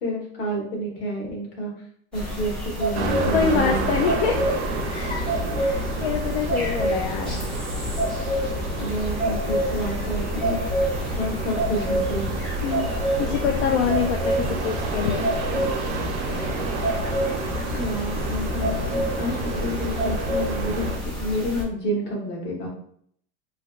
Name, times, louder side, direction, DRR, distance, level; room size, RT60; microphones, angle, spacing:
voice 1, 0.0-1.7 2.1-2.5 2.8-3.9 8.8-10.9 11.2-12.2 12.8-13.2 17.7-20.9 21.2-22.7, equal, 60° left, -2 dB, 1.4 m, -29 dB
sound 1, 2.1-21.6, equal, 5° left, 0.4 m, -28 dB
sound 2, 2.9-21.0, right 2 dB, 85° right, 0.7 m, -30 dB
voice 2, 3.3-4.6 4.9-7.5 7.9-8.0 12.6-12.9 13.2-15.3, left 6 dB, 80° left, 3 dB, 0.5 m, -26 dB
3.3 x 2.9 x 2.4 m, 0.65 s
supercardioid pair, 180°, 33 cm